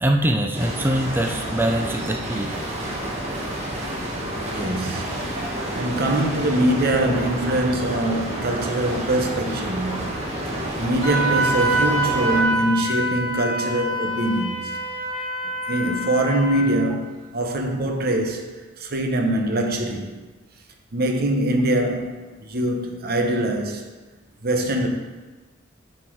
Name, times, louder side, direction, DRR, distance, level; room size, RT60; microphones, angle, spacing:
voice 1, 0.0-2.5, right 1 dB, 10° right, 0.5 m, -23 dB
sound 1, 0.5-12.4, right 1 dB, 35° right, 1.5 m, -29 dB
voice 2, 4.5-5.4 5.7-14.8 15.7-20.2 20.9-23.8 24.4-24.9, right 1 dB, 50° right, 1.0 m, -23 dB
Wind instrument woodwind instrument, 11.0-16.8, right 2 dB, 25° left, 1.7 m, -25 dB
9.7 x 4.4 x 4.6 m
head